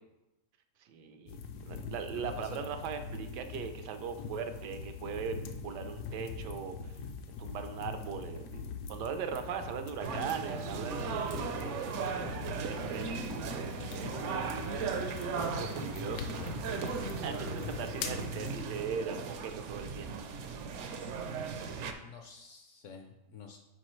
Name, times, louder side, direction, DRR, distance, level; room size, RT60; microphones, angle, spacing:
voice 1, 0.8-7.0 7.4-14.2 15.3-16.5 17.0-20.1, right 7 dB, 85° right, 7 dB, 1.3 m, -40 dB
sound 1, 1.3-18.6, left 5 dB, 80° left, 1.2 m, -42 dB
voice 2, 2.1-2.7 17.1-18.0 22.0-23.6, left 6 dB, 65° left, 4 dB, 0.8 m, -49 dB
sound 2, 10.0-21.9, right 5 dB, 65° right, 0.8 m, -37 dB
10.5 x 4.5 x 3.1 m, 0.98 s
omnidirectional pair, 1.8 m